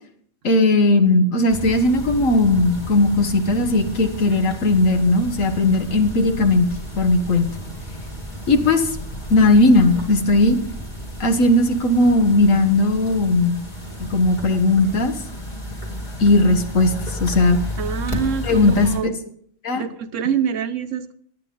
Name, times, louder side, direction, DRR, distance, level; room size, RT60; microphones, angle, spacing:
voice 1, 0.4-7.5 8.5-8.9 9.3-10.6 11.2-13.6 14.0-15.1 16.2-17.6 18.5-19.1 19.6-19.8, left 2 dB, 85° left, 7 dB, 1.7 m, -17 dB
sound 1, 1.5-19.0, equal, 35° left, 2.8 m, -33 dB
voice 2, 17.8-19.1 19.7-21.1, right 8 dB, 75° right, 10 dB, 1.1 m, -25 dB
18.5 x 10.5 x 3.8 m, 0.63 s
omnidirectional pair, 1.3 m